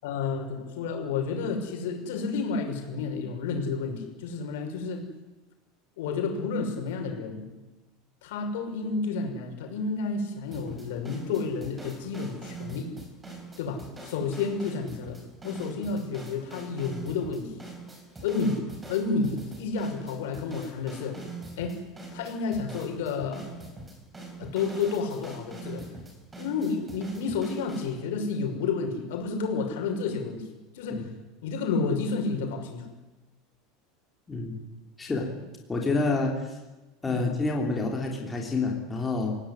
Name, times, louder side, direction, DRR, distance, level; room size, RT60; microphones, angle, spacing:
voice 1, 0.0-5.0 6.0-7.5 8.2-12.9 13.6-17.5 18.2-18.6 18.9-21.2 21.6-21.8 22.1-23.5 24.4-25.9 26.4-30.5 30.7-31.1 31.4-32.8 37.0-37.4, left 4 dB, 75° left, 3 dB, 6.3 m, -30 dB
sound 1, 10.5-28.0, right 2 dB, 10° right, 4.6 m, -44 dB
voice 2, 34.3-34.6 35.0-35.3 35.7-36.5 37.0-39.4, left 3 dB, 10° left, 0 dB, 3.3 m, -28 dB
27.5 x 17.5 x 10.0 m, 1.1 s
supercardioid pair, 170°, 0 cm